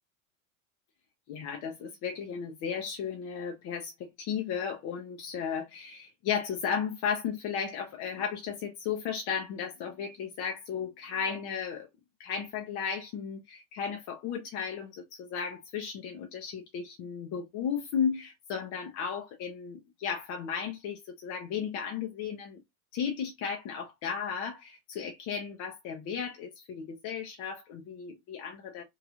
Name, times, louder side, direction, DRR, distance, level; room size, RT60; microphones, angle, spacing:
voice 1, 1.3-11.9 12.2-22.6 22.9-28.8, left 7 dB, 45° left, 0.8 m, -35 dB
3.1 x 2.8 x 2.3 m
hypercardioid pair, 85°, 42 cm